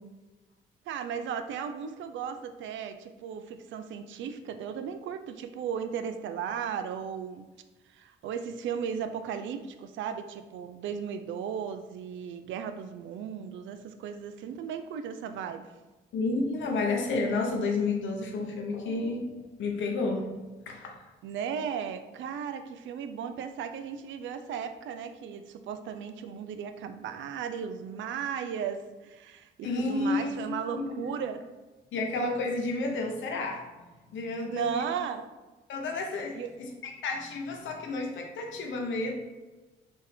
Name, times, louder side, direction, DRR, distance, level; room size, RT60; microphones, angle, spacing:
voice 1, 0.9-7.5 7.9-15.7 21.2-31.4 34.5-35.3 36.4-36.6, right 7 dB, 70° right, 9 dB, 0.4 m, -36 dB
voice 2, 16.1-19.3 19.6-20.3 20.7-20.9 29.6-31.1 31.9-33.6 34.1-34.8 35.7-39.1, left 3 dB, 70° left, 2 dB, 0.8 m, -31 dB
4.4 x 2.7 x 3.5 m, 1.2 s
cardioid pair, 90°, 20 cm